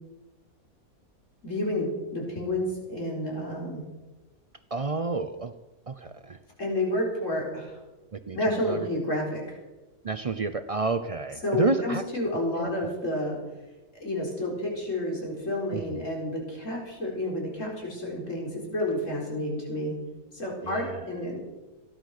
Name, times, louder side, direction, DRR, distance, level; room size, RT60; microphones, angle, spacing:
voice 1, 1.4-3.8 6.6-7.8 8.3-9.6 11.4-13.4 14.0-20.0 20.3-21.4, left 1 dB, 55° left, -1 dB, 4.8 m, -30 dB
voice 2, 4.7-5.5 5.9-6.4 8.1-8.4 8.7-8.9 10.0-12.0 12.5-12.9 15.7-16.1 20.6-21.1, right 3 dB, 55° right, 11 dB, 0.4 m, -30 dB
17.0 x 11.0 x 6.5 m, 1.1 s
omnidirectional pair, 1.6 m